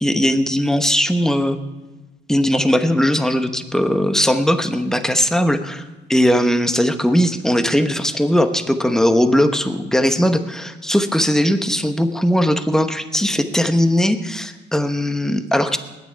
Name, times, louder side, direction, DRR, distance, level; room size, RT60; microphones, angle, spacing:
voice 1, 0.0-1.6 2.3-15.8, equal, ahead, 8 dB, 1.1 m, -19 dB
20.0 x 9.1 x 4.6 m, 1.1 s
cardioid pair, 90°, 20 cm